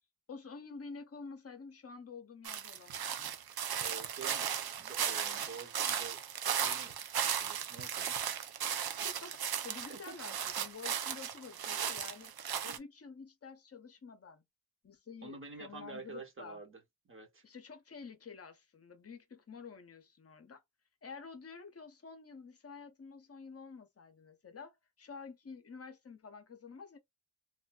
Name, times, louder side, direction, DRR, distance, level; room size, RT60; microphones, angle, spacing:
voice 1, 0.3-3.4 8.7-12.3 12.6-14.4 14.8-16.6 17.4-20.6 21.0-27.0, left 5 dB, 40° left, 0.6 m, -49 dB
sound 1, 2.4-12.8, right 8 dB, 70° right, 0.6 m, -36 dB
voice 2, 3.8-4.5 4.8-6.2 6.5-7.0 7.2-8.2 9.8-10.1 15.2-17.4, right 4 dB, 35° right, 1.0 m, -49 dB
3.2 x 2.5 x 2.3 m
wide cardioid pair, 175°, 38 cm